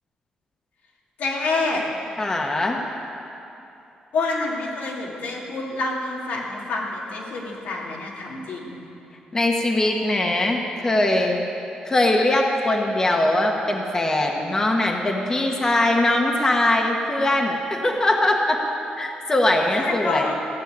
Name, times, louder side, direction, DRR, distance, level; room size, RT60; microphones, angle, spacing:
voice 1, 1.2-1.8 4.1-8.8 19.8-20.3, left 3 dB, 90° left, -3 dB, 2.5 m, -27 dB
voice 2, 2.2-2.8 9.3-11.4 11.9-18.6 19.0-20.3, left 1 dB, 20° left, 1 dB, 1.2 m, -21 dB
16.0 x 6.7 x 9.4 m, 2.9 s
cardioid pair, 120°, 3 cm